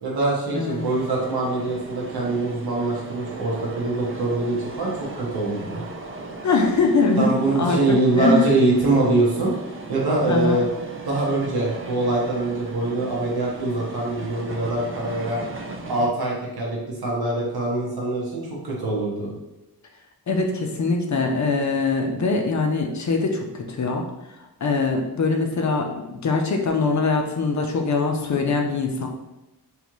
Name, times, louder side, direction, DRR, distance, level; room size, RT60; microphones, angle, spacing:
voice 1, 0.0-5.8 7.2-9.5 9.9-10.7 11.1-15.4 15.9-19.3, right 2 dB, 75° right, -4 dB, 1.1 m, -23 dB
voice 2, 0.5-0.8 6.4-7.8 8.1-8.4 10.3-10.6 20.3-24.1 24.6-29.1, left 3 dB, 50° left, 3 dB, 0.6 m, -22 dB
sound 1, 0.8-16.1, right 2 dB, 35° right, 0.4 m, -38 dB
3.8 x 3.1 x 3.1 m, 0.99 s
wide cardioid pair, 165°, 38 cm